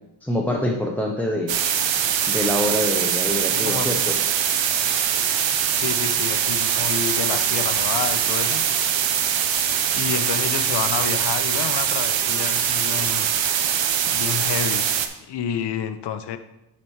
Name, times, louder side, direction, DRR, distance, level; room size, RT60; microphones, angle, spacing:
voice 1, 0.2-1.6 2.3-4.1, left 1 dB, 5° left, -1 dB, 0.5 m, -25 dB
sound 1, 1.5-15.1, right 9 dB, 85° right, 0.8 m, -22 dB
voice 2, 3.5-3.9 5.7-8.6 9.9-13.3 14.1-14.9 15.3-16.4, left 8 dB, 65° left, 10 dB, 0.7 m, -29 dB
8.7 x 4.2 x 4.6 m, 0.91 s
wide cardioid pair, 170°, 44 cm